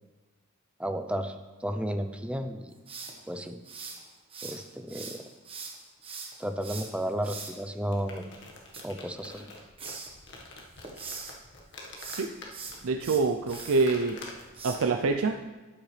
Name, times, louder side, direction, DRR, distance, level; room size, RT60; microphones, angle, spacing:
voice 1, 0.8-1.4 1.6-2.7 3.3-3.6 4.4-5.2 6.4-8.3 8.8-9.5, equal, 5° right, 7 dB, 0.5 m, -33 dB
sound 1, 2.9-4.6 4.9-7.5 8.5-9.5 9.8-10.1 10.6-11.3 11.9-13.9 14.6-14.8, right 4 dB, 25° right, 1.3 m, -41 dB
sound 2, 7.7-15.2, left 2 dB, 60° left, 1.6 m, -47 dB
voice 2, 12.8-14.2 14.6-15.4, right 3 dB, 85° right, 5 dB, 0.5 m, -26 dB
12.5 x 9.2 x 3.3 m, 1.2 s
head